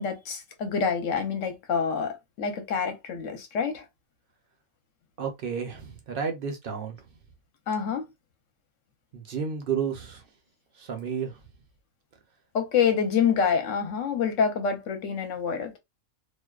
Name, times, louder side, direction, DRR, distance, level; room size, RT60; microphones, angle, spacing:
voice 1, 0.0-3.9 7.7-8.1 12.5-15.8, left 6 dB, 65° left, 1.0 m, -27 dB
voice 2, 5.2-7.0 9.1-10.2 10.8-11.4, right 6 dB, 55° right, 0.6 m, -31 dB
2.6 x 2.1 x 2.3 m
omnidirectional pair, 1.5 m